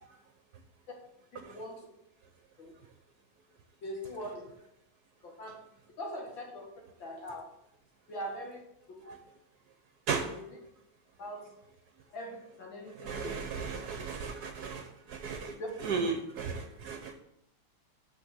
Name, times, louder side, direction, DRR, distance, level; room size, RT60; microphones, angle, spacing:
voice 1, 1.3-1.9 2.6-2.7 3.8-4.5 5.4-5.5 6.0-6.7 7.0-7.4 8.1-8.6 10.2-10.6 11.2-11.6 12.1-13.3 15.6-15.7, equal, 70° left, -1 dB, 2.8 m, -41 dB
voice 2, 13.0-14.8 15.1-15.5 15.8-17.1, right 5 dB, 65° right, 6 dB, 1.1 m, -35 dB
7.1 x 6.2 x 6.3 m, 0.81 s
omnidirectional pair, 2.2 m